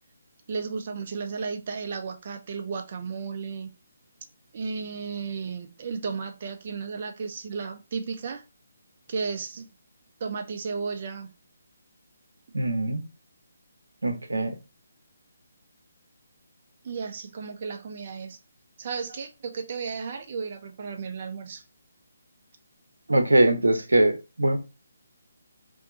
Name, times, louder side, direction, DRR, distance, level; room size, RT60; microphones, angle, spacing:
voice 1, 0.5-3.7 4.5-8.4 9.1-9.7 10.2-11.3 16.8-18.4 18.8-21.6, right 5 dB, 45° right, 0.6 m, -34 dB
voice 2, 12.5-13.0 14.0-14.6 23.1-24.6, right 1 dB, 80° right, 0.9 m, -22 dB
2.7 x 2.2 x 3.9 m
figure-of-eight pair, 150°, 0 cm